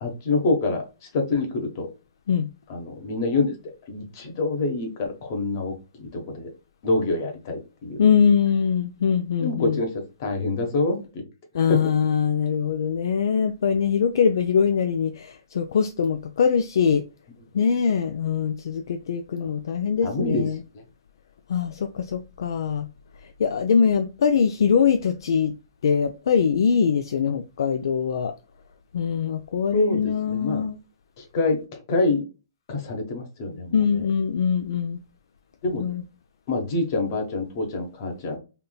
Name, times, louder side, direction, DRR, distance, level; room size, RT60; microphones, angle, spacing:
voice 1, 0.0-0.8 1.1-1.9 2.7-3.5 3.9-6.5 6.8-8.0 9.4-9.9 10.2-11.2 11.5-11.8 20.0-20.4 29.7-30.6 31.3-32.2 32.7-34.1 35.6-35.8 36.5-38.4, left 2 dB, 40° left, 1.1 m, -26 dB
voice 2, 8.0-9.8 11.5-17.0 17.5-20.6 21.5-22.9 23.4-25.5 25.8-28.3 28.9-30.8 33.7-35.0 35.8-36.0, left 6 dB, 65° left, 0.3 m, -22 dB
3.5 x 2.6 x 2.2 m
hypercardioid pair, 140°, 2 cm